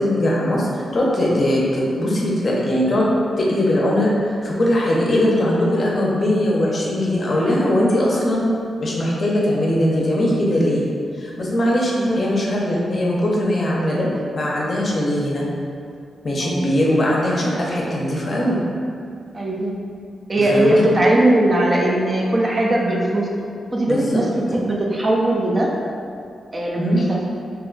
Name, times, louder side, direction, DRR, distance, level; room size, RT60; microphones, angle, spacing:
voice 1, 0.0-3.1 3.4-8.5 8.8-10.8 11.2-15.5 16.2-18.6 20.4-20.8 23.8-24.2 26.8-27.1, left 1 dB, 40° left, -4 dB, 0.6 m, -20 dB
voice 2, 19.3-19.7 20.3-23.3 23.7-25.7 26.5-27.2, right 1 dB, 30° right, -2 dB, 0.4 m, -19 dB
2.7 x 2.2 x 3.8 m, 2.4 s
wide cardioid pair, 115°, 0 cm